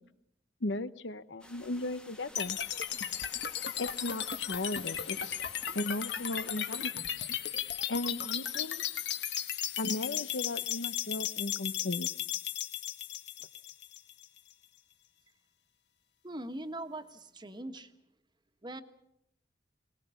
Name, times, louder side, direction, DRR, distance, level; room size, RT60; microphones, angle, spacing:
voice 1, 0.6-2.6 3.8-5.4 5.7-7.3 7.9-8.8 9.8-12.1, left 2 dB, 90° left, 14 dB, 0.9 m, -36 dB
sound 1, 1.4-6.9, left 1 dB, 5° left, 1.1 m, -54 dB
sound 2, 2.4-14.4, left 10 dB, 70° left, 1.2 m, -35 dB
voice 2, 16.2-17.9 18.6-18.8, right 1 dB, 25° right, 7 dB, 1.5 m, -41 dB
22.5 x 19.5 x 7.1 m, 0.76 s
head